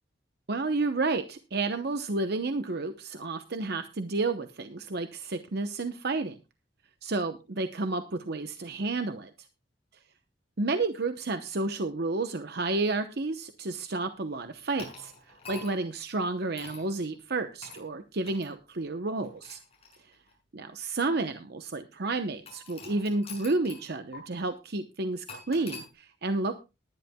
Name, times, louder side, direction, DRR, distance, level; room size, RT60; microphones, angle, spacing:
voice 1, 0.5-6.4 7.0-9.3 10.6-19.6 20.5-26.5, right 3 dB, 60° right, 9 dB, 0.9 m, -31 dB
sound 1, 14.8-15.9 16.6-16.9 17.6-17.8 18.3-18.5 19.2-20.3 21.1-21.2 22.5-23.9 24.1-24.2 25.3-25.9, left 4 dB, 35° left, 6.9 m, -45 dB
20.0 x 11.0 x 2.3 m, 0.27 s
head